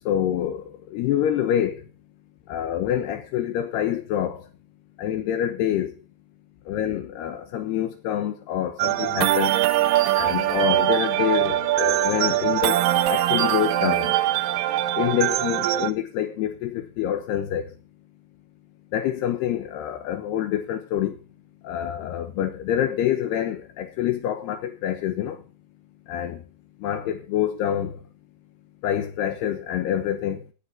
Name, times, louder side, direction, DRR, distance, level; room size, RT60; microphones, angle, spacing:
voice 1, 0.1-0.6 0.9-1.8 2.5-4.4 5.0-5.9 6.7-9.6 10.2-12.8 13.1-14.1 15.0-17.7 18.9-21.1 21.6-25.4 26.1-26.4 26.8-28.0 28.8-30.4, left 10 dB, 75° left, 3.0 m, -26 dB
sound 1, 8.8-15.9, right 14 dB, 85° right, 2.0 m, -22 dB
16.0 x 7.8 x 5.8 m
omnidirectional pair, 5.0 m